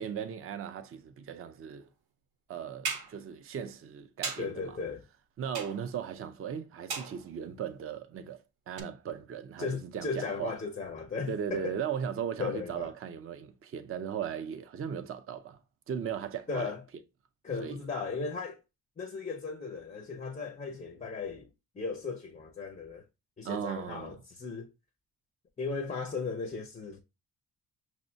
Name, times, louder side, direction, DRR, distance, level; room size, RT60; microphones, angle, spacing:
voice 1, 0.0-1.9 2.5-4.7 5.4-8.4 8.7-10.5 11.3-15.6 15.9-16.7 17.6-17.8 23.4-24.2, right 8 dB, 40° right, 0.4 m, -37 dB
sound 1, 2.8-3.2 4.2-4.6 5.5-6.0 6.9-7.4 8.8-8.9, right 5 dB, 80° right, 0.8 m, -36 dB
voice 2, 4.4-5.0 9.6-11.8 12.4-12.9 16.5-16.8 17.4-18.6 19.0-21.5 21.8-23.0 23.4-24.7 25.6-27.0, left 4 dB, 20° left, 0.4 m, -36 dB
6.0 x 2.1 x 2.5 m
wide cardioid pair, 170°, 37 cm